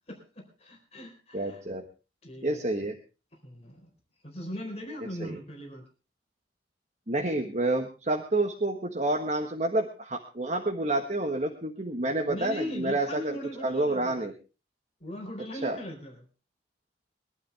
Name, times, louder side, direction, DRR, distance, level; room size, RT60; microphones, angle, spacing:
voice 1, 0.1-1.6 2.2-2.6 3.4-3.9 4.2-5.8 12.3-14.3 15.0-16.2, left 1 dB, 35° left, 2 dB, 4.2 m, -39 dB
voice 2, 1.3-1.9 2.4-3.0 5.0-5.4 7.1-14.3 15.6-15.8, right 2 dB, 40° right, 3 dB, 1.5 m, -29 dB
22.5 x 12.0 x 3.5 m, 0.33 s
head